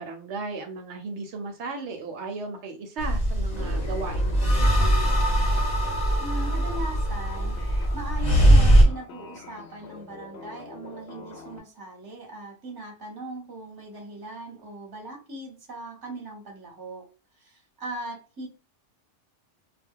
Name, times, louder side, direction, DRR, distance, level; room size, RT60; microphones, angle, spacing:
voice 1, 0.0-5.1, right 3 dB, 70° right, 5 dB, 0.8 m, -36 dB
sound 1, 3.0-8.8, right 1 dB, 40° left, 0.8 m, -21 dB
sound 2, 3.6-11.6, left 4 dB, 65° left, 0.8 m, -44 dB
voice 2, 6.2-7.6 7.9-17.1 17.4-18.5, right 2 dB, 20° right, 1 dB, 0.7 m, -39 dB
2.2 x 2.0 x 3.5 m, 0.35 s
omnidirectional pair, 1.3 m